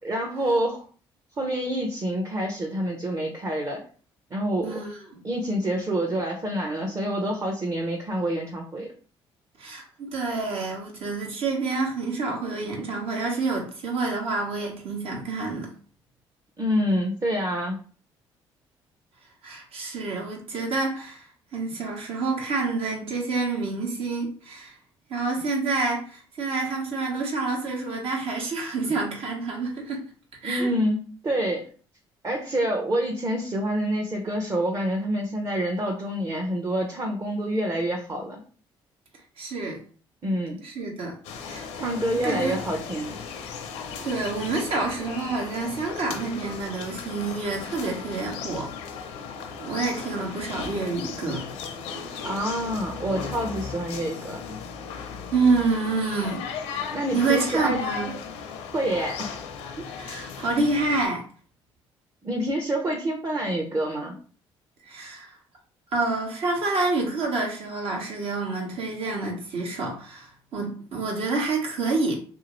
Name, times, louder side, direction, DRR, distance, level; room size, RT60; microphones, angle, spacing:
voice 1, 0.0-0.8 1.4-3.8 4.3-4.8 5.2-8.9 16.6-17.8 30.4-31.7 32.2-38.4 40.2-40.6 41.7-43.2 52.2-54.6 56.9-57.8 58.7-59.4 59.8-59.9 62.2-64.1, right 1 dB, 35° right, 0.7 m, -27 dB
voice 2, 4.6-5.2 9.6-15.7 19.4-21.3 21.5-24.7 25.1-30.1 30.4-30.7 39.4-39.8 40.6-41.1 41.4-42.6 44.0-48.7 49.6-51.5 55.3-56.9 57.1-58.1 60.0-61.2 64.9-65.4 65.9-72.1, right 3 dB, 70° right, 1.1 m, -28 dB
sound 1, 41.2-61.1, left 6 dB, 85° left, 0.5 m, -36 dB
2.7 x 2.5 x 3.0 m
supercardioid pair, 65°, 10 cm